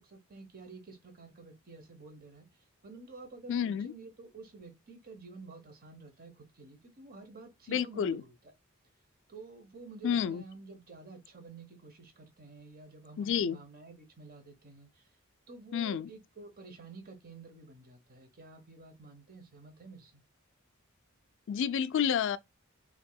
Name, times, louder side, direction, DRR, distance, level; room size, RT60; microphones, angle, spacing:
voice 1, 0.0-2.5 2.8-8.3 9.3-15.1 15.5-20.2, right 3 dB, 45° right, 1.1 m, -50 dB
voice 2, 3.5-3.9 7.7-8.2 10.0-10.4 13.2-13.6 15.7-16.1 21.5-22.4, left 8 dB, 60° left, 0.3 m, -30 dB
5.3 x 2.9 x 2.3 m
head